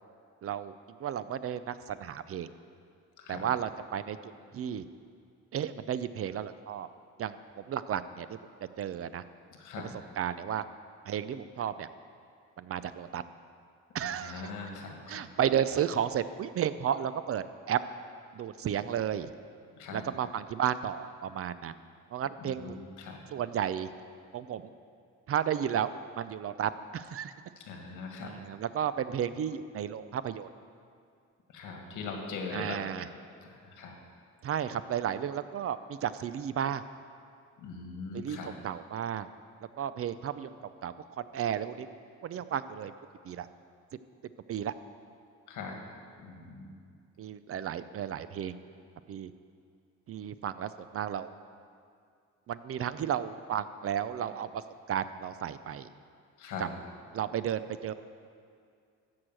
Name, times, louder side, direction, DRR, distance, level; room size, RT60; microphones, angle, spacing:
voice 1, 0.4-0.7 1.0-2.5 3.3-4.8 5.5-6.9 7.2-8.4 8.8-9.2 9.8-9.9 10.2-10.7 11.1-11.9 12.6-13.2 13.9-14.5 15.1-17.8 18.3-19.3 19.9-21.8 22.1-22.8 23.3-23.9 24.3-24.7 25.3-27.3 28.2-30.5 32.5-33.1 34.4-36.8 38.1-38.4 38.6-39.3 39.8-40.5 40.8-41.9 42.2-42.9 43.2-43.5 44.5-44.7 47.2-48.6 49.1-49.3 50.1-51.3 52.5-54.6 54.9-55.9 56.6-56.7 57.1-57.9, right 9 dB, 50° right, 13 dB, 0.5 m, -33 dB
voice 2, 3.2-3.5 9.6-9.9 14.0-15.3 19.7-20.0 22.4-23.2 27.7-28.3 31.5-32.8 33.5-33.9 37.6-38.5 45.5-45.8 46.2-46.7 56.4-56.7, left 4 dB, 85° left, 2 dB, 1.8 m, -41 dB
13.0 x 4.8 x 7.5 m, 2.3 s
cardioid pair, 90°, 30 cm